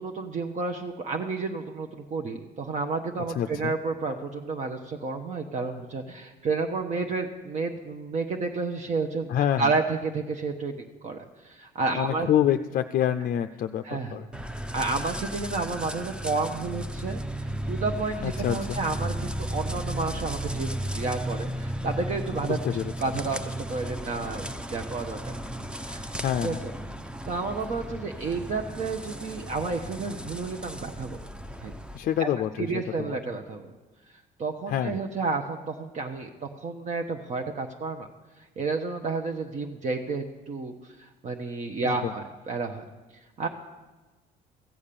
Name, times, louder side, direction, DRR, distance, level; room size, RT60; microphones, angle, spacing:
voice 1, 0.0-9.3 9.6-12.3 13.8-14.2 14.7-25.3 25.9-26.1 26.4-26.5 27.3-31.2 31.6-31.7 32.2-32.3 32.6-33.7 34.4-38.1 38.6-40.7 41.0-42.8 43.4-43.5, right 4 dB, 45° right, 3 dB, 0.9 m, -31 dB
voice 2, 3.3-3.7 9.3-9.7 11.9-14.3 18.2-18.8 22.5-22.9 26.2-26.7 31.9-33.2 34.7-34.9 41.8-42.1, left 10 dB, 55° left, 8 dB, 0.4 m, -27 dB
sound 1, 14.3-32.0, right 1 dB, 5° right, 0.6 m, -35 dB
15.0 x 7.2 x 6.8 m, 1.2 s
cardioid pair, 110°, 17 cm